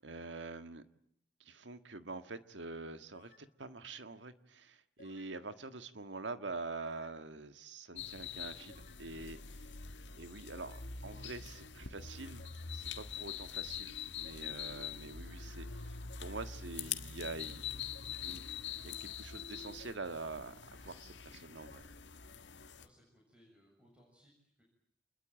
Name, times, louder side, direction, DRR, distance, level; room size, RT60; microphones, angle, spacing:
voice 1, 0.0-0.8 1.4-9.7 10.2-12.5 12.7-15.9 16.2-17.7 18.2-18.4 18.8-21.9, right 3 dB, 85° right, 10 dB, 1.7 m, -45 dB
sound 1, 3.1-3.5 5.0-5.4 6.8-7.2 8.7-9.1 10.5-10.9 12.4-12.8 14.2-14.6 16.1-16.5 17.9-18.3 19.8-20.2 21.7-21.8, left 2 dB, 50° left, 4.1 m, -61 dB
sound 2, 8.0-22.9, left 7 dB, 85° left, 1.7 m, -44 dB
voice 2, 22.8-24.6, equal, 5° right, -2 dB, 7.6 m, -66 dB
28.0 x 21.5 x 9.1 m, 0.73 s
head